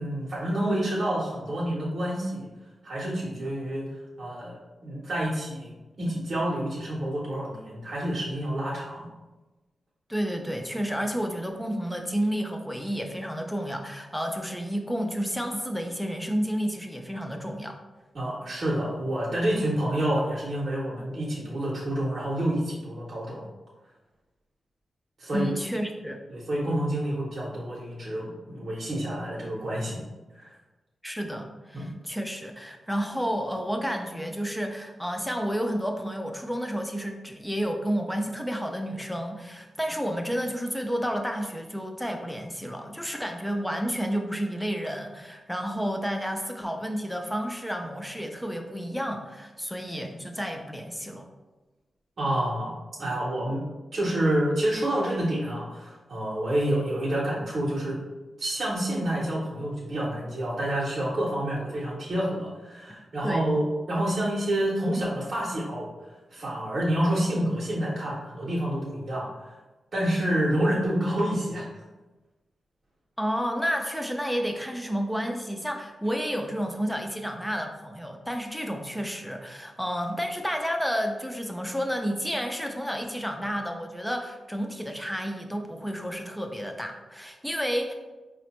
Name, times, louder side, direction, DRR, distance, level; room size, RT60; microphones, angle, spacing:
voice 1, 0.0-2.5 2.8-3.9 4.2-9.1 18.1-23.4 25.2-25.5 26.3-30.0 30.3-30.5 31.7-31.9 52.2-52.7 53.0-53.6 53.9-58.0 58.4-65.9 66.3-69.3 69.9-71.7, right 1 dB, 45° right, -5 dB, 0.7 m, -28 dB
voice 2, 10.1-17.8 25.3-26.2 31.0-51.3 63.2-63.4 73.2-87.9, equal, ahead, 4 dB, 0.3 m, -31 dB
4.8 x 2.1 x 2.9 m, 1.2 s
wide cardioid pair, 150°, 0 cm